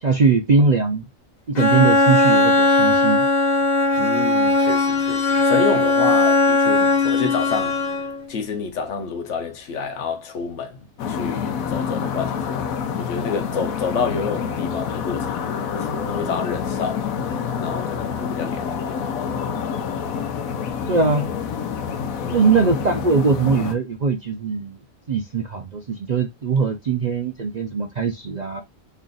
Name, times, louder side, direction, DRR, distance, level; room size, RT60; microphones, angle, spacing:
voice 1, 0.0-1.0 1.5-3.3 20.9-21.3 22.3-24.8 25.1-28.6, right 4 dB, 55° right, 0.5 m, -21 dB
Bowed string instrument, 1.5-8.3, left 2 dB, 40° left, 0.8 m, -18 dB
voice 2, 4.0-7.8 8.3-12.6 13.0-17.2 17.6-19.0 22.2-22.4, left 5 dB, 60° left, 1.1 m, -29 dB
sound 1, 11.0-23.7, left 7 dB, 85° left, 1.1 m, -27 dB
3.2 x 2.5 x 3.8 m
omnidirectional pair, 1.4 m